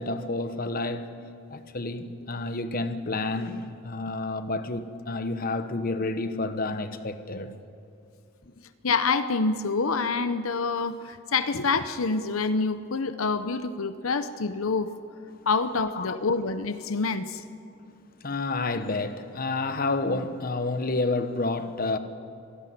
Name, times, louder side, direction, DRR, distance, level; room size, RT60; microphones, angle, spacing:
voice 1, 0.0-7.6 15.9-16.1 18.2-22.0, left 2 dB, 45° left, 1.0 m, -30 dB
voice 2, 8.8-14.9 15.5-17.4, left 4 dB, 80° left, 0.8 m, -27 dB
26.0 x 12.0 x 9.5 m
head